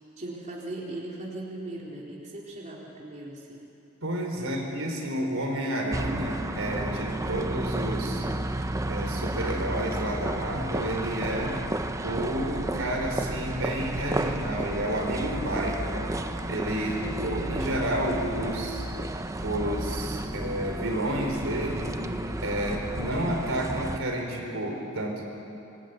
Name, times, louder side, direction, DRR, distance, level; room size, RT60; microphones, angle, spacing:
voice 1, 0.2-3.6 4.4-4.5 16.8-17.3 20.2-20.4 22.1-22.5, right 2 dB, 35° right, -4 dB, 3.7 m, -39 dB
voice 2, 4.0-8.3 8.9-11.6 12.0-16.1 16.5-18.9 19.4-22.0 22.4-25.2, right 1 dB, 70° right, 1 dB, 4.4 m, -30 dB
sound 1, 5.9-24.0, right 1 dB, 15° right, 0.8 m, -32 dB
26.0 x 20.5 x 9.5 m, 2.9 s
head